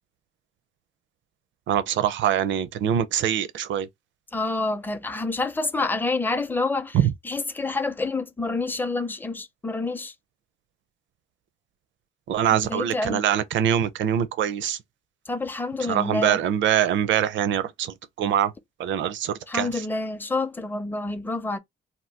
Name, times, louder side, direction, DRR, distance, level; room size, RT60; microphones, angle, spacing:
voice 1, 1.7-3.9 6.9-7.1 12.3-14.8 15.8-18.5 18.8-19.8, right 10 dB, 70° right, 0.5 m, -24 dB
voice 2, 4.3-7.0 7.2-10.1 12.5-13.2 15.3-16.4 19.5-21.6, left 3 dB, 10° left, 0.5 m, -28 dB
2.8 x 2.2 x 3.3 m
cardioid pair, 90°, 20 cm